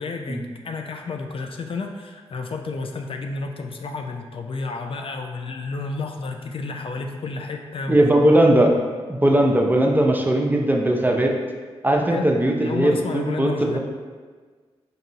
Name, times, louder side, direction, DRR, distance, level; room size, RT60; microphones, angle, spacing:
voice 1, 0.0-8.0 12.0-12.3 12.6-13.8, left 4 dB, 50° left, 3 dB, 0.3 m, -31 dB
voice 2, 7.9-8.7 9.1-11.3 11.8-13.8, right 1 dB, 15° right, 1 dB, 0.5 m, -19 dB
3.9 x 2.7 x 2.8 m, 1.5 s
cardioid pair, 45°, 12 cm